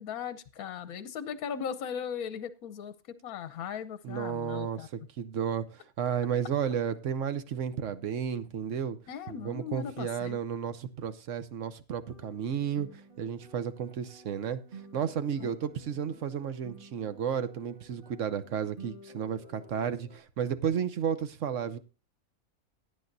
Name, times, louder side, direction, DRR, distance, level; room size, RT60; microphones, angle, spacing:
voice 1, 0.0-2.9 3.2-4.9 9.1-10.4 15.4-15.5, left 8 dB, 75° left, 1.3 m, -38 dB
voice 2, 4.0-9.0 9.3-21.8, right 8 dB, 60° right, 1.1 m, -33 dB
sound 1, 12.0-20.2, right 2 dB, 35° right, 2.6 m, -52 dB
16.5 x 9.2 x 2.7 m
omnidirectional pair, 1.6 m